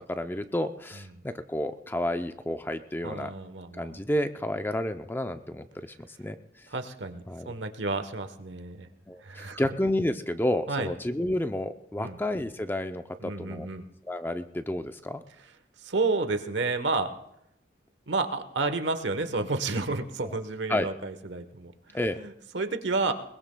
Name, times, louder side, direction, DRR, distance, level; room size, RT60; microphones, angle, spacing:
voice 1, 0.1-3.3 3.7-6.4 7.3-7.5 9.1-13.7 14.1-15.2 20.2-20.4 20.7-20.9 21.9-22.2, left 1 dB, 10° left, 9 dB, 0.4 m, -30 dB
voice 2, 3.0-4.0 6.7-8.9 9.2-9.6 10.7-10.9 12.0-12.2 13.2-13.9 15.8-17.1 18.1-23.1, right 3 dB, 85° right, 9 dB, 1.1 m, -31 dB
21.5 x 20.5 x 2.2 m, 0.78 s
head